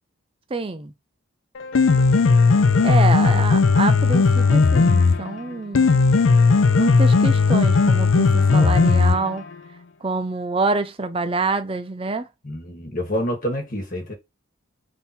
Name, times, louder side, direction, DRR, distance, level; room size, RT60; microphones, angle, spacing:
voice 1, 0.5-0.9 2.8-5.9 6.8-9.5 10.0-12.3, right 3 dB, 25° right, 0.4 m, -26 dB
Piano, 1.6-9.5, left 4 dB, 65° left, 0.4 m, -16 dB
voice 2, 12.4-14.1, equal, 40° left, 1.4 m, -27 dB
3.5 x 2.7 x 4.2 m
head